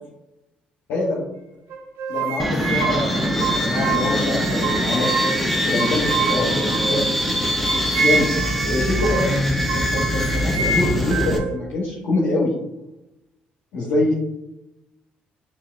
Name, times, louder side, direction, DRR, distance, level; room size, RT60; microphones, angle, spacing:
voice 1, 0.9-1.2 2.1-5.1 5.6-7.0 7.7-8.3 8.6-12.5 13.7-14.1, left 2 dB, 80° left, -6 dB, 1.0 m, -24 dB
sound 1, 1.7-4.2 4.6-5.5 5.8-7.2 7.6-8.5 9.0-9.2 9.7-11.6, right 4 dB, 80° right, 1.3 m, -26 dB
sound 2, 2.4-11.4, equal, ahead, 0.7 m, -23 dB
5.7 x 2.5 x 2.4 m, 0.89 s
hypercardioid pair, 55°, 4 cm